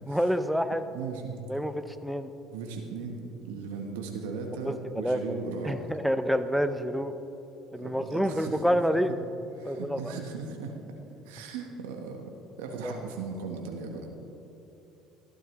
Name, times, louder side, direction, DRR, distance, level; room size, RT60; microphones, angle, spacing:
voice 1, 0.1-0.9 1.5-2.3 4.6-5.4 5.6-7.1 7.7-9.1 9.6-10.1 12.8-13.0, equal, ahead, 10 dB, 0.7 m, -28 dB
voice 2, 0.9-1.4 2.5-3.2 3.4-5.9 7.7-8.8 9.6-10.7 11.2-12.2 12.6-14.1, right 5 dB, 80° right, 3 dB, 1.0 m, -37 dB
14.0 x 12.0 x 3.1 m, 2.9 s
hypercardioid pair, 65°, 0 cm